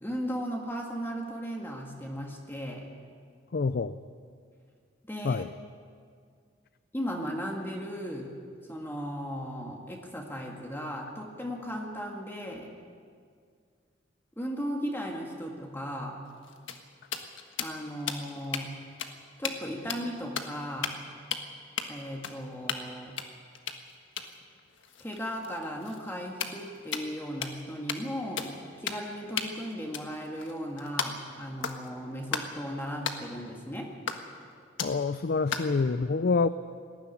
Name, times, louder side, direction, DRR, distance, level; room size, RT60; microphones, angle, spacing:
voice 1, 0.0-2.9 5.1-5.4 6.9-8.3 8.7-12.7 14.4-16.2 17.6-18.8 19.4-21.0 21.9-23.2 25.0-33.9, equal, 10° left, 0 dB, 1.8 m, -36 dB
voice 2, 3.5-4.0 5.2-5.5 34.8-36.5, left 4 dB, 55° left, 13 dB, 0.5 m, -27 dB
sound 1, 16.3-18.7 19.0-19.1 19.4-19.6 19.9-20.5 20.8-21.1 21.3-21.4 21.8-21.9 22.2-22.9 23.2-27.2 27.4-27.6 27.9-28.1 28.4-28.5 28.9-29.1 29.4-31.3 31.6-31.9 32.3-32.5 33.0-33.2 34.1-34.4 34.8-35.0 35.5-35.8, left 6 dB, 90° left, 1.5 m, -35 dB
19.5 x 14.0 x 9.8 m, 2.1 s
head